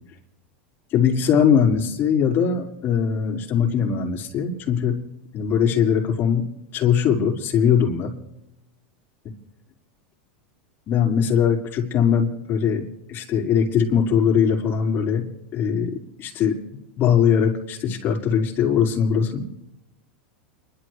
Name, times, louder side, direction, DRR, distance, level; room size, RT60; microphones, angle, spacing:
voice 1, 0.9-5.0 5.3-6.5 6.7-8.1 10.9-15.3 15.5-16.5 17.0-19.5, left 7 dB, 35° left, -1 dB, 4.7 m, -21 dB
30.0 x 12.0 x 3.3 m, 0.85 s
hypercardioid pair, 115°, 6 cm